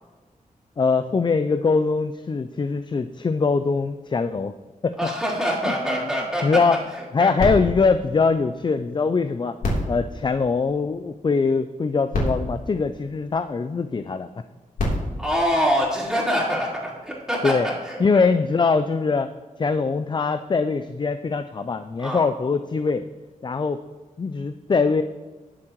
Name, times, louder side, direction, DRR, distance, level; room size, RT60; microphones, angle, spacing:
voice 1, 0.8-4.5 4.8-5.0 5.7-6.1 6.4-6.8 7.1-9.6 9.9-14.4 17.4-17.7 18.0-19.3 19.6-23.1 23.4-23.8 24.2-25.0, left 4 dB, 35° left, 10 dB, 0.4 m, -22 dB
voice 2, 5.0-6.6 6.9-7.3 15.2-18.0 22.0-22.2, equal, 5° right, -7 dB, 4.1 m, -25 dB
sound 1, 7.4-9.0 9.6-11.2 11.8-11.9 12.1-13.7 14.5-16.3 17.1-17.2, left 1 dB, 85° left, 3.4 m, -30 dB
19.0 x 7.5 x 3.1 m, 1.3 s
wide cardioid pair, 115°, 14 cm